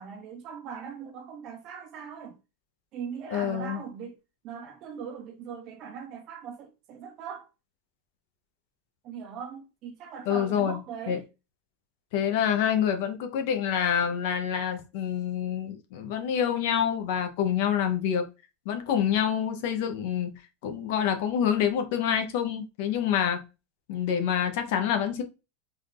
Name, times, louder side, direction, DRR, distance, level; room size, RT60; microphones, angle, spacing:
voice 1, 0.0-2.4 2.9-4.2 4.4-7.5 9.0-11.2, right 7 dB, 30° right, 0.6 m, -40 dB
voice 2, 3.3-3.8 10.3-10.8 11.1-11.2 12.1-18.3 18.7-20.3 20.6-23.4 23.9-25.2, left 8 dB, 50° left, 0.8 m, -27 dB
3.9 x 2.5 x 3.3 m
supercardioid pair, 175°, 0 cm